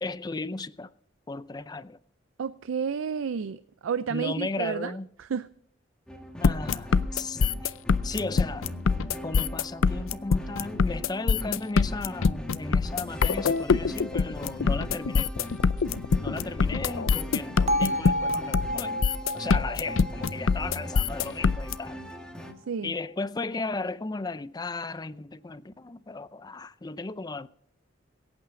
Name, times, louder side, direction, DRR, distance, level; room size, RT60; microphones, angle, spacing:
voice 1, 0.0-0.9 1.3-2.0 4.1-5.1 6.4-7.8 8.0-8.7 9.2-15.5 16.2-22.0 22.8-27.5, left 3 dB, 20° left, 0.4 m, -35 dB
voice 2, 2.4-5.5 22.7-22.9, right 6 dB, 85° right, 0.4 m, -31 dB
sound 1, 6.1-22.5, left 1 dB, 5° left, 1.5 m, -41 dB
sound 2, 6.4-21.7, left 5 dB, 90° left, 0.5 m, -24 dB
Bell, 17.7-21.7, equal, 35° right, 1.0 m, -31 dB
23.0 x 8.9 x 3.7 m
head